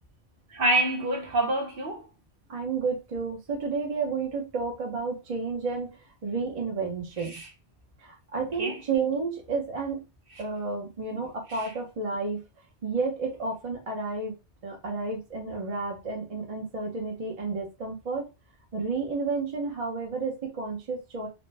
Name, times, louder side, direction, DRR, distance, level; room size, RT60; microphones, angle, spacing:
voice 1, 0.5-2.1 7.2-7.5 8.6-8.8 11.5-11.7, right 1 dB, 55° right, 1.0 m, -27 dB
voice 2, 2.5-7.4 8.0-10.0 10.4-12.4 12.8-14.3 14.6-18.2 18.7-21.3, right 4 dB, 35° right, 0.8 m, -31 dB
4.1 x 2.1 x 3.3 m
omnidirectional pair, 1.2 m